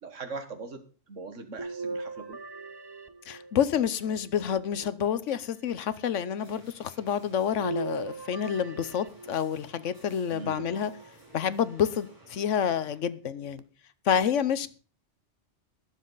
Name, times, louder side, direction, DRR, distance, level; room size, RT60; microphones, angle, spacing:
voice 1, 0.0-2.4 10.3-10.7, right 4 dB, 85° right, 1.8 m, -41 dB
sound 1, 1.6-3.9 4.6-5.6 7.6-9.7 10.6-11.5 12.1-12.2 13.6-13.7, right 3 dB, 25° right, 0.6 m, -39 dB
voice 2, 3.3-10.9 11.3-13.6 14.0-14.7, left 8 dB, 80° left, 1.2 m, -28 dB
sound 2, 6.3-13.0, right 1 dB, 40° left, 6.6 m, -56 dB
21.0 x 7.5 x 4.0 m
omnidirectional pair, 1.2 m